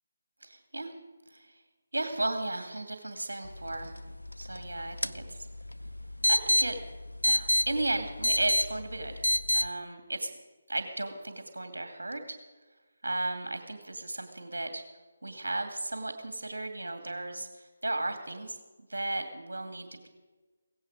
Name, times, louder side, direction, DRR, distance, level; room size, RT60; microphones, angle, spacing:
voice 1, 0.4-1.0 1.3-1.6 1.9-3.9 4.4-5.5 6.3-6.8 7.2-9.2 9.5-10.3 10.7-12.2 13.0-14.8 15.2-18.6 18.9-20.1, right 2 dB, 65° right, 6 dB, 2.4 m, -35 dB
sound 1, 3.4-9.7, left 1 dB, 85° left, 0.7 m, -30 dB
17.5 x 16.5 x 5.0 m, 1.3 s
figure-of-eight pair, 150°, 0 cm